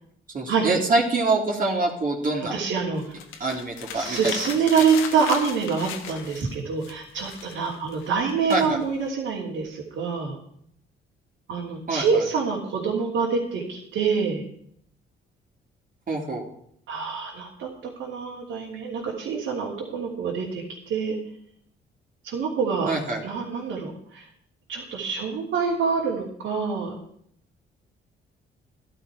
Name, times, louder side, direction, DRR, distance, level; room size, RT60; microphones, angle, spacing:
voice 1, 0.3-2.6 3.4-4.3 8.5-8.8 11.9-12.2 16.1-16.4 22.9-23.2, right 3 dB, 45° right, -1 dB, 3.0 m, -25 dB
voice 2, 2.5-3.0 3.9-10.4 11.5-14.4 16.9-17.7 18.0-21.2 22.2-22.9 23.2-24.3 24.7-27.0, right 5 dB, 80° right, -5 dB, 3.1 m, -26 dB
sound 1, 3.0-6.6 6.8-9.1, left 7 dB, 85° left, 1.5 m, -36 dB
14.5 x 11.5 x 4.9 m, 0.67 s
cardioid pair, 90°, 20 cm